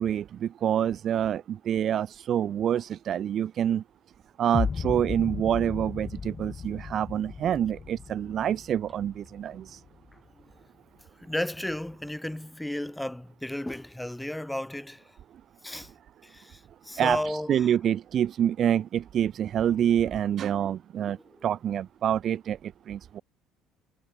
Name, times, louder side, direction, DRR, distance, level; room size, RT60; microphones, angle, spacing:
voice 1, 0.0-3.8 4.4-9.8 15.7-15.8 17.0-21.2 21.4-23.2, right 10 dB, 55° right, 0.6 m, -27 dB
sound 1, 4.5-10.5, left 5 dB, 35° left, 0.4 m, -36 dB
voice 2, 11.2-15.2 15.6-15.9 16.2-17.8 20.6-20.7 21.1-21.2, left 1 dB, 5° left, 1.2 m, -34 dB
hypercardioid pair, 70°, 0 cm